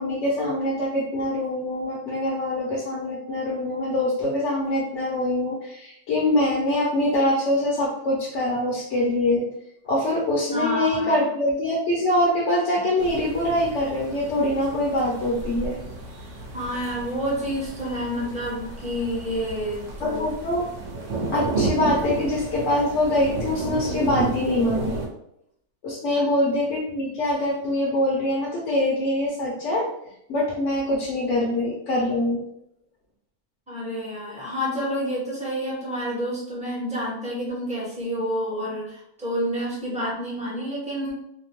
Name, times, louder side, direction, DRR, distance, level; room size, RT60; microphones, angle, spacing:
voice 1, 0.0-9.5 9.9-15.8 20.0-20.7 21.3-25.0 25.8-29.9 30.3-32.4, left 1 dB, 65° left, -4 dB, 0.9 m, -24 dB
voice 2, 10.5-11.3 16.5-20.2 26.1-26.2 33.7-41.1, equal, 5° right, -7 dB, 0.7 m, -29 dB
sound 1, 13.0-25.1, right 3 dB, 60° right, 0.9 m, -32 dB
2.8 x 2.1 x 2.9 m, 0.75 s
omnidirectional pair, 1.5 m